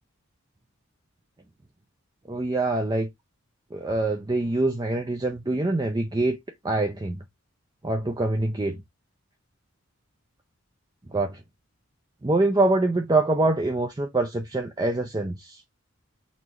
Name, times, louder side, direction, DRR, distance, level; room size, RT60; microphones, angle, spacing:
voice 1, 2.3-3.1 3.7-6.4 6.6-7.2 7.8-8.8 11.1-11.4 12.2-15.6, right 2 dB, 20° right, 0.5 m, -24 dB
4.1 x 2.8 x 4.6 m
head